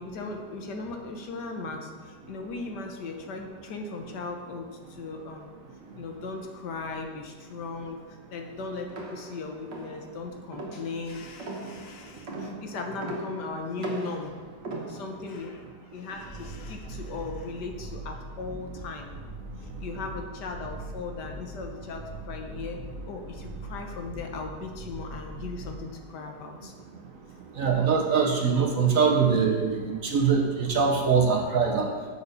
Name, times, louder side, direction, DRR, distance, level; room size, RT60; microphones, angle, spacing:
voice 1, 0.0-5.5 6.0-14.4 14.9-19.1 19.6-26.8, left 3 dB, 75° left, 4 dB, 1.6 m, -38 dB
sound 1, 8.9-15.4, right 2 dB, 85° right, 2.0 m, -39 dB
sound 2, 16.1-25.8, right 1 dB, ahead, 1.7 m, -41 dB
voice 2, 27.6-31.9, right 5 dB, 55° right, 1 dB, 1.3 m, -23 dB
6.8 x 6.6 x 6.7 m, 1.5 s
omnidirectional pair, 1.9 m